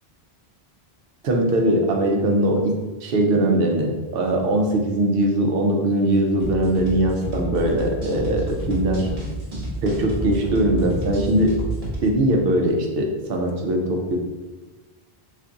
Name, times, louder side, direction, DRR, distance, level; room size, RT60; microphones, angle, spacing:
voice 1, 1.2-9.1 9.8-11.6 12.0-14.2, right 1 dB, 70° right, 2 dB, 0.8 m, -21 dB
sound 1, 6.4-12.0, right 1 dB, 40° right, 0.9 m, -29 dB
2.5 x 2.3 x 3.8 m, 1.2 s
omnidirectional pair, 1.0 m